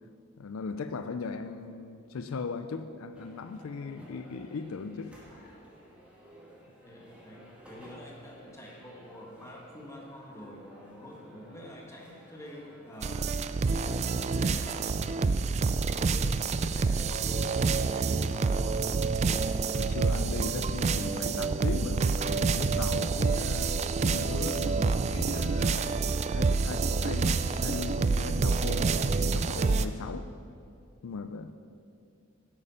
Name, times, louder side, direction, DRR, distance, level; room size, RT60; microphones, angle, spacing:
voice 1, 0.4-5.1 19.7-23.7 24.0-30.3 31.0-31.5, left 4 dB, 80° left, 10 dB, 0.4 m, -38 dB
sound 1, 3.1-17.7, equal, 5° right, 1.9 m, -54 dB
voice 2, 6.8-13.3 13.7-15.0 15.8-19.2, left 1 dB, 15° left, -1 dB, 1.5 m, -47 dB
sound 2, 13.0-29.9, right 4 dB, 35° right, 0.3 m, -28 dB
10.0 x 8.3 x 5.7 m, 2.4 s
head